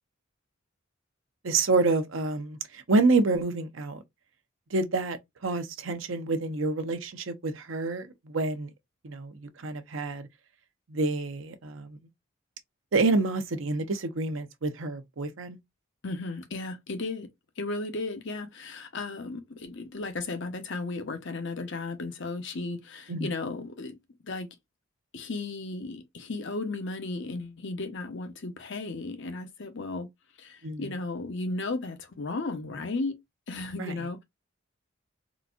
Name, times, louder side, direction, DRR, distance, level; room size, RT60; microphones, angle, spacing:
voice 1, 1.4-4.0 4.7-5.2 5.4-8.7 9.0-10.3 10.9-12.0 12.9-15.6 23.1-23.3 30.6-30.9 33.8-33.9, right 3 dB, 75° right, 0.7 m, -28 dB
voice 2, 16.0-17.3 17.6-24.0 24.2-24.5 25.1-30.1 30.4-33.2 33.5-34.2, left 3 dB, 65° left, 0.8 m, -35 dB
3.9 x 2.5 x 2.3 m
head